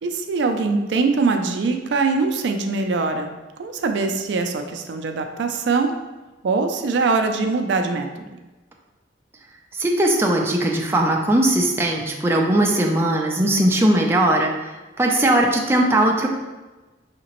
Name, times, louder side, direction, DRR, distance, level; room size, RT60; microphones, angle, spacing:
voice 1, 0.0-3.3 3.6-5.9 6.4-8.4, right 4 dB, 75° right, 5 dB, 0.4 m, -22 dB
voice 2, 9.7-16.3, right 1 dB, 15° right, 0 dB, 0.4 m, -19 dB
5.0 x 2.8 x 3.0 m, 1.2 s
head